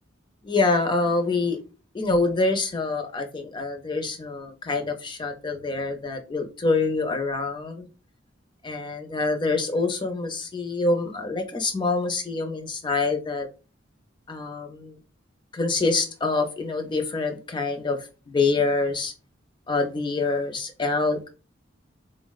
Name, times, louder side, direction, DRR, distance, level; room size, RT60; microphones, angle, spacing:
voice 1, 0.4-1.6 1.9-7.9 8.6-13.5 14.3-15.0 15.5-18.0 18.3-19.1 19.7-21.3, left 3 dB, 25° left, 5 dB, 0.4 m, -26 dB
3.9 x 2.0 x 2.3 m, 0.34 s
head